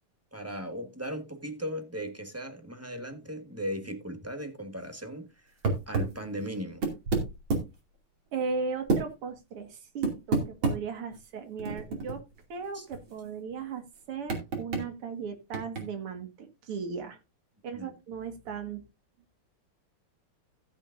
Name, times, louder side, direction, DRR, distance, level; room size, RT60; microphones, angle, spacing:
voice 1, 0.3-5.3 5.9-6.9 12.7-12.8 17.7-17.9, equal, 10° right, 1.2 m, -37 dB
sound 1, 5.6-6.2 6.7-7.7 8.9-9.0 10.0-10.8 11.1-11.2 11.6-12.4 12.7-12.8 12.9-13.1 14.3-14.8 15.5-15.8, right 3 dB, 65° right, 3.5 m, -28 dB
voice 2, 8.3-12.2 12.5-17.2 17.6-18.8, right 5 dB, 80° right, 2.7 m, -37 dB
15.0 x 8.3 x 2.6 m
omnidirectional pair, 2.4 m